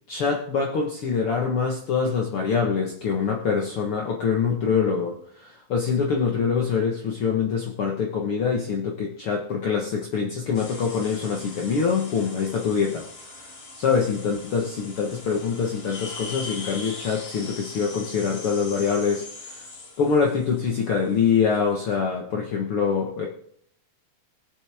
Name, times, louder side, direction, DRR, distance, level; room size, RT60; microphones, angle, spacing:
voice 1, 0.1-13.0 13.8-19.6 20.0-23.3, left 6 dB, 70° left, 0 dB, 1.3 m, -24 dB
sound 1, 10.5-21.9, left 3 dB, 45° left, 3.0 m, -41 dB
22.0 x 7.8 x 3.5 m, 0.66 s
omnidirectional pair, 4.5 m